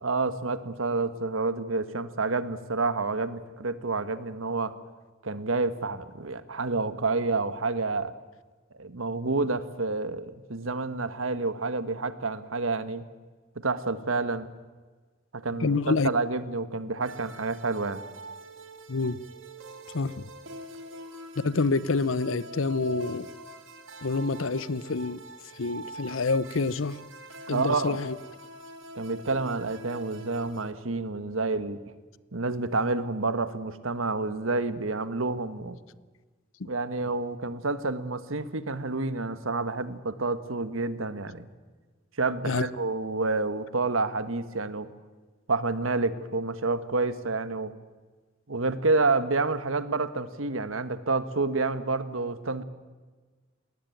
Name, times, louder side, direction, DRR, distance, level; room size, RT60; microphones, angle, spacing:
voice 1, 0.0-4.7 5.2-8.1 8.7-13.0 13.6-14.5 15.3-18.0 27.5-28.0 28.9-31.8 32.3-35.8 36.6-41.5 42.2-44.9 45.5-47.7 48.5-52.6, right 3 dB, 90° right, 1.3 m, -29 dB
voice 2, 15.6-16.1 18.9-19.2 19.9-20.2 21.4-23.3 24.0-25.2 25.6-27.0 27.5-28.2 36.6-36.7 42.5-42.7, left 3 dB, 80° left, 0.8 m, -27 dB
sound 1, 17.0-30.7, right 1 dB, 75° right, 2.1 m, -44 dB
21.0 x 19.0 x 9.1 m
head